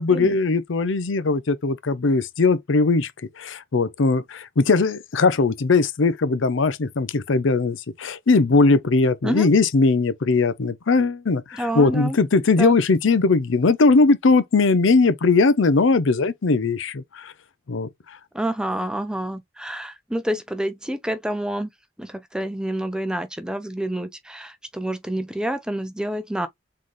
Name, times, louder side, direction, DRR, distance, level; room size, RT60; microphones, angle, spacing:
voice 1, 0.0-3.1 3.4-17.3 17.7-17.9, left 3 dB, 80° left, 0.6 m, -19 dB
voice 2, 11.5-12.2 12.6-12.7 18.3-21.7 22.0-26.5, right 1 dB, 5° right, 0.5 m, -28 dB
4.0 x 3.7 x 3.1 m
head